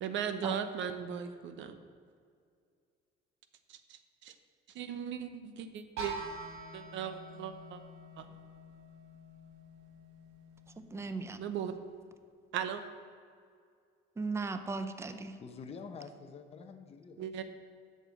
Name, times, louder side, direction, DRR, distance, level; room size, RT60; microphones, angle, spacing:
voice 1, 0.0-1.8 3.7-4.3 4.7-6.2 6.7-7.8 8.2-8.3 11.4-11.7 12.5-12.8 17.2-17.4, right 8 dB, 65° right, 10 dB, 0.8 m, -38 dB
sound 1, 6.0-11.8, right 2 dB, 90° right, 1.6 m, -47 dB
voice 2, 10.8-11.4 14.2-15.4, right 3 dB, 15° right, 9 dB, 0.5 m, -37 dB
voice 3, 15.4-17.4, left 5 dB, 30° left, 6 dB, 0.7 m, -47 dB
7.9 x 6.7 x 7.5 m, 2.2 s
cardioid pair, 150°, 21 cm